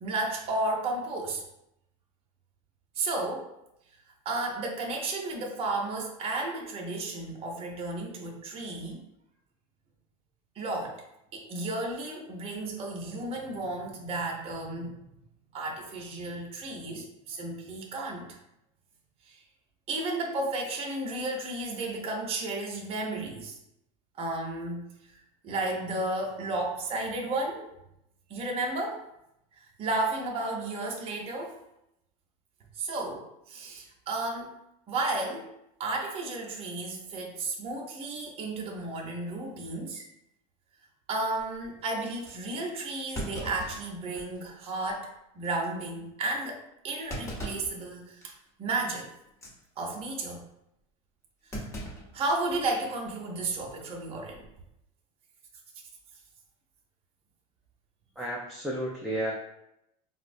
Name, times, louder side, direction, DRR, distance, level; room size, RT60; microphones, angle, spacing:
voice 1, 0.0-1.4 3.0-3.5 4.2-9.0 10.5-11.0 11.3-15.0 15.5-18.4 19.2-19.4 19.9-23.6 24.2-25.1 25.4-27.7 28.3-29.0 29.6-31.6 32.7-34.6 34.9-35.5 35.8-40.0 41.1-45.1 45.3-48.3 48.6-49.1 49.8-50.4 52.1-54.4, right 2 dB, 35° right, 0 dB, 0.7 m, -33 dB
Thump thud, 41.4-41.7 42.2-42.4 43.1-44.5 44.9-45.0 45.4-45.7 47.1-47.8 48.2-48.5 49.3-49.6 51.5-52.7 53.0-53.1 54.3-54.6, right 1 dB, 15° left, 0.8 m, -39 dB
voice 2, 58.2-59.3, right 1 dB, ahead, -4 dB, 0.4 m, -32 dB
4.2 x 2.0 x 2.5 m, 0.82 s
supercardioid pair, 125°, 18 cm